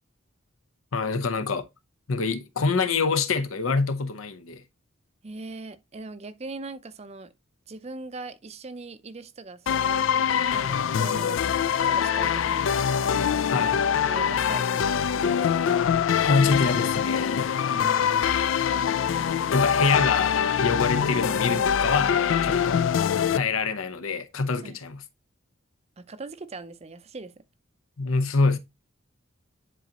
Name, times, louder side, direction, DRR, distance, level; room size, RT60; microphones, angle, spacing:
voice 1, 0.9-1.7 2.1-4.6 13.5-13.8 16.2-17.5 19.5-22.8 23.3-25.0 28.0-28.6, left 4 dB, 80° left, 0.8 m, -26 dB
voice 2, 5.2-7.3 7.7-10.1 10.5-11.4 11.8-12.7 14.0-15.5 17.7-18.3 24.6-24.8 26.0-27.3, right 3 dB, 30° right, 0.5 m, -40 dB
sound 1, 9.7-23.4, left 8 dB, 65° left, 0.4 m, -24 dB
10.0 x 3.9 x 2.8 m
head